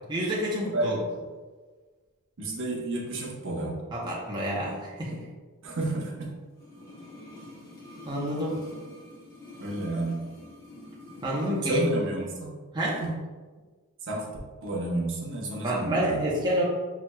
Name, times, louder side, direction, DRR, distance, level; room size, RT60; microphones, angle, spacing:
voice 1, 0.1-0.9 3.9-5.2 8.0-8.6 11.2-11.8 12.7-13.0 15.6-16.6, equal, 20° right, -5 dB, 0.7 m, -28 dB
voice 2, 0.7-1.3 2.4-3.8 5.6-6.3 9.6-10.2 11.6-12.5 13.0-13.2 14.0-14.3 14.6-16.3, right 2 dB, 60° right, -2 dB, 0.9 m, -31 dB
sound 1, 6.5-12.0 12.3-12.4, left 1 dB, 45° left, 1.0 m, -46 dB
6.0 x 3.0 x 2.2 m, 1.4 s
head